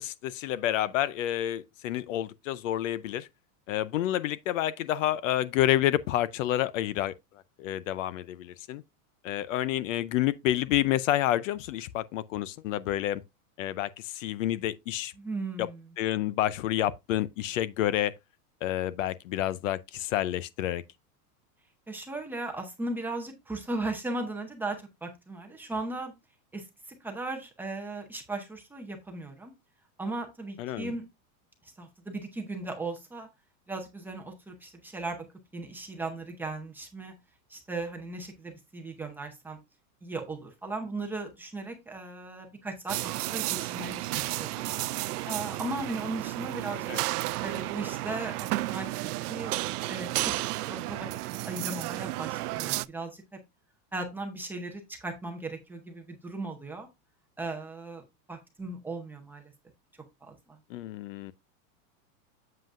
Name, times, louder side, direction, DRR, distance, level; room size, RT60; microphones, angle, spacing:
voice 1, 0.0-3.3 3.7-7.1 7.6-8.8 9.2-13.2 13.6-15.1 15.6-15.7 16.0-18.1 18.6-20.8 30.6-30.9 46.9-47.0 60.7-61.3, left 13 dB, 60° left, 0.6 m, -29 dB
voice 2, 15.2-15.8 21.9-26.1 26.5-26.6 27.0-29.5 30.0-31.0 31.6-33.3 33.7-35.2 35.5-37.1 37.5-39.6 40.0-44.7 45.3-46.9 47.4-48.9 49.3-49.5 49.9-50.3 50.7-51.1 51.4-53.4 53.9-56.9 57.4-58.0 58.3-59.5 60.2-60.6, right 2 dB, 5° right, 0.6 m, -37 dB
sound 1, 42.9-52.9, right 18 dB, 90° right, 0.6 m, -32 dB
7.6 x 7.6 x 2.4 m
supercardioid pair, 170°, 44 cm